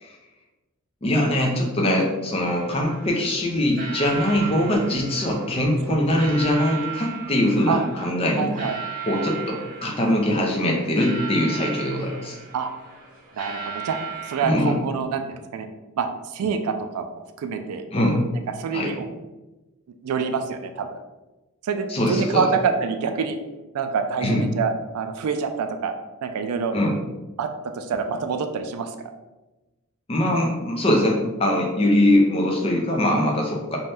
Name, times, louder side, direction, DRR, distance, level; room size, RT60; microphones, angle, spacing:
voice 1, 1.0-8.5 9.1-12.4 14.4-14.8 17.9-18.2 18.7-18.9 21.9-22.5 24.2-24.4 26.7-27.0 30.1-33.8, left 1 dB, 25° left, 0 dB, 0.4 m, -22 dB
sound 1, 2.5-14.5, right 7 dB, 40° right, 0.7 m, -37 dB
voice 2, 8.4-8.7 12.5-12.7 13.3-14.0 14.2-15.7 16.0-16.1 16.3-17.8 18.6-19.1 20.0-20.9 21.6-23.4 23.7-25.9 26.2-26.7 27.4-28.9, right 5 dB, 85° right, 7 dB, 0.3 m, -26 dB
2.6 x 2.2 x 3.3 m, 1.1 s
head